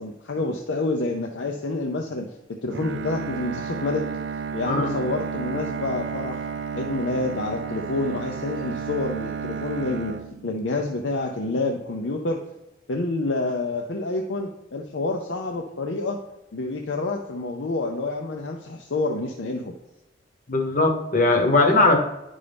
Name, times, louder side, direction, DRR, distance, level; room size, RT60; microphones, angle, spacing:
voice 1, 0.0-2.3 2.6-4.0 4.5-10.1 10.4-12.4 12.9-16.2 16.5-19.7, left 2 dB, 75° left, 2 dB, 0.6 m, -28 dB
Bowed string instrument, 2.7-10.9, right 6 dB, 70° right, 0.4 m, -32 dB
voice 2, 20.5-22.0, left 2 dB, 45° left, 3 dB, 1.0 m, -19 dB
9.9 x 5.4 x 3.4 m, 0.94 s
head